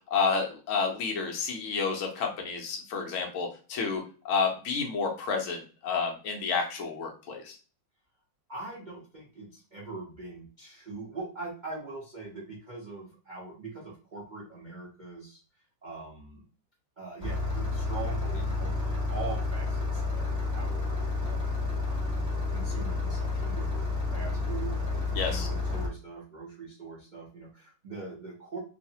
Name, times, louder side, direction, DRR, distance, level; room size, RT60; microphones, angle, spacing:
voice 1, 0.1-7.5 25.1-25.5, left 5 dB, 80° left, 1 dB, 0.7 m, -30 dB
voice 2, 8.5-15.4 15.8-16.4 17.0-28.6, right 3 dB, 80° right, -4 dB, 0.4 m, -42 dB
Engine starting, 17.2-25.9, left 3 dB, 5° right, 0.7 m, -30 dB
3.1 x 2.0 x 2.7 m, 0.37 s
omnidirectional pair, 2.1 m